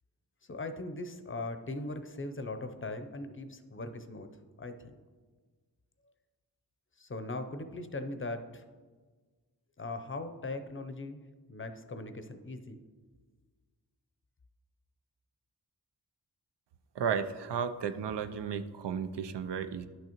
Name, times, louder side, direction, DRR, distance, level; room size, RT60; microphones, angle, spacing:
voice 1, 0.5-4.9 7.0-8.6 9.8-11.2 11.5-12.8, left 2 dB, 30° left, 8 dB, 0.6 m, -40 dB
voice 2, 17.0-19.9, right 7 dB, 90° right, 10 dB, 0.5 m, -33 dB
11.0 x 6.2 x 2.9 m, 1.4 s
wide cardioid pair, 75°, 40 cm